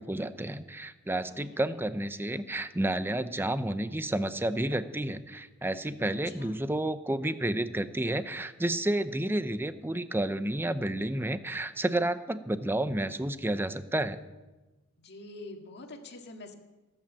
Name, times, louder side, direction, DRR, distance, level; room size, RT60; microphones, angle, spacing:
voice 1, 0.0-14.2, right 1 dB, 10° right, 12 dB, 0.6 m, -31 dB
voice 2, 1.3-1.8 6.2-6.6 15.0-16.5, left 2 dB, 50° left, 3 dB, 1.9 m, -46 dB
18.0 x 8.9 x 7.3 m, 1.1 s
head